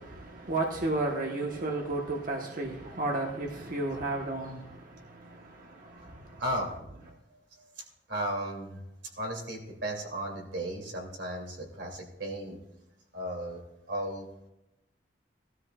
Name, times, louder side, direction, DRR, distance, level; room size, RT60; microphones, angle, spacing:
voice 1, 0.0-6.4, right 2 dB, 50° right, 1.2 m, -33 dB
voice 2, 6.4-6.7 7.6-7.8 8.1-8.8 9.2-12.6 13.1-13.6 13.9-14.2, right 1 dB, 75° right, 2.8 m, -35 dB
19.0 x 13.0 x 2.4 m
head